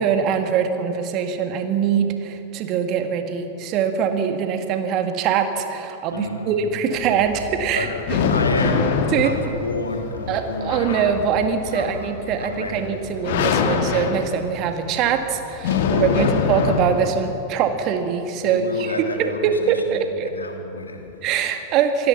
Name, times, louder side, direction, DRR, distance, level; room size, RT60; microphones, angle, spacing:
voice 1, 0.0-8.3 9.1-9.6 10.3-20.3 21.2-22.1, right 7 dB, 40° right, 7 dB, 1.9 m, -23 dB
voice 2, 6.1-6.6 7.7-8.0 8.3-11.0 11.7-12.1 12.4-12.8 15.7-16.3 18.4-21.1, left 2 dB, 75° left, 3 dB, 2.7 m, -30 dB
sound 1, 7.0-17.4, left 6 dB, 55° left, 1.6 m, -25 dB
27.5 x 16.5 x 5.9 m, 2.9 s
figure-of-eight pair, 90°, 0 cm